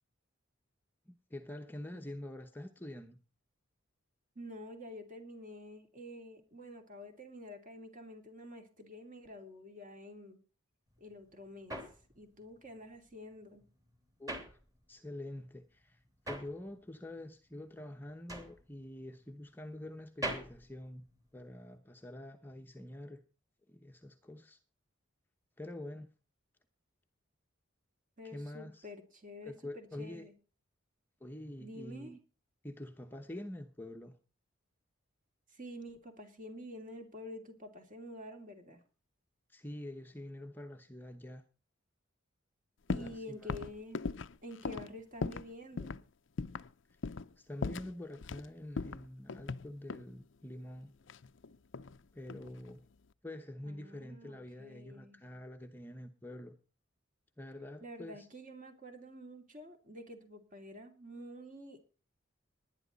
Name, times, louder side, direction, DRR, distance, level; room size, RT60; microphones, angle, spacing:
voice 1, 1.1-3.2 14.2-14.6 14.9-21.1 21.3-23.2 23.7-24.6 25.6-26.1 28.2-28.9 29.5-30.2 31.2-32.2 32.6-34.2 39.5-41.4 42.9-43.5 47.4-50.9 52.1-52.8 53.2-56.6 57.4-58.3, left 1 dB, 10° left, 0.9 m, -46 dB
voice 2, 4.3-10.4 11.0-11.8 12.1-13.7 28.2-30.3 31.6-32.1 35.5-38.8 42.9-44.0 44.4-46.0 53.6-55.2 57.8-61.8, left 1 dB, 40° right, 2.9 m, -48 dB
sound 1, 10.9-15.2 15.5-21.7, right 1 dB, 15° right, 2.8 m, -45 dB
sound 2, 42.9-43.2 43.5-45.5 45.8-46.0 46.4-46.7 47.0-47.3 47.6-48.5 48.8-50.1 51.1-52.0 52.3-52.7, left 4 dB, 65° left, 0.6 m, -39 dB
19.5 x 10.5 x 4.0 m
head